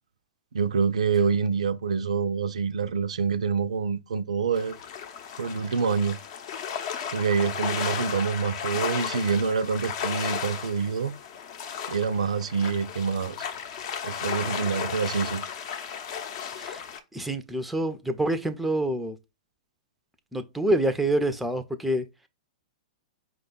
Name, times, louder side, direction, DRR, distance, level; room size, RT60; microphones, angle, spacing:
voice 1, 0.5-4.8 5.4-6.2 7.1-11.1 11.9-13.4 14.0-15.5, right 5 dB, 70° right, 0.4 m, -26 dB
sound 1, 4.5-17.0, left 7 dB, 50° left, 0.7 m, -34 dB
voice 2, 16.5-16.8 17.1-19.2 20.3-22.1, right 1 dB, ahead, 0.4 m, -27 dB
4.9 x 2.3 x 3.7 m
figure-of-eight pair, 105°, 4 cm